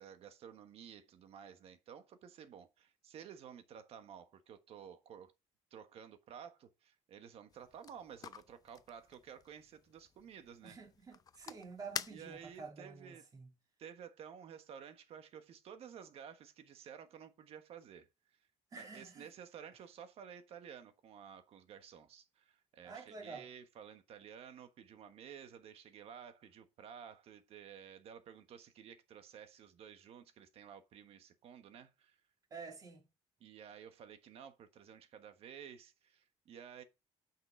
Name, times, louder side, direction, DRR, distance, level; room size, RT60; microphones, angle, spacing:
voice 1, 0.0-5.3 5.7-10.8 12.1-13.2 13.8-18.1 18.7-32.2 33.4-36.8, right 8 dB, 55° right, 1.3 m, -53 dB
sound 1, 7.5-12.7, left 7 dB, 30° left, 0.5 m, -49 dB
voice 2, 10.6-13.5 18.7-19.3 22.8-23.5 32.5-33.0, right 4 dB, 30° right, 2.5 m, -49 dB
9.1 x 6.0 x 3.9 m
cardioid pair, 155°, 12 cm